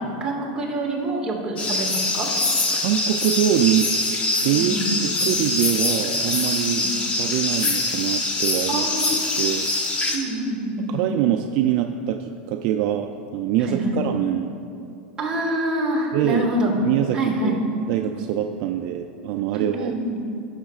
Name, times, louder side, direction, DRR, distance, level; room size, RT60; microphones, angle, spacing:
voice 1, 0.0-2.3 4.5-4.9 6.6-6.9 8.7-9.2 10.1-11.0 13.6-14.0 15.2-16.7 17.1-17.6 19.5-20.2, right 1 dB, 15° right, -4 dB, 1.8 m, -26 dB
sound 1, 1.6-10.2, left 2 dB, 25° left, 1.0 m, -24 dB
voice 2, 2.7-3.9 4.4-6.8 7.2-8.9 9.4-9.7 10.9-14.5 16.1-16.5 16.8-17.6 17.9-20.0, right 11 dB, 50° right, 5 dB, 0.3 m, -24 dB
16.0 x 6.4 x 2.4 m, 2.8 s
supercardioid pair, 135°, 5 cm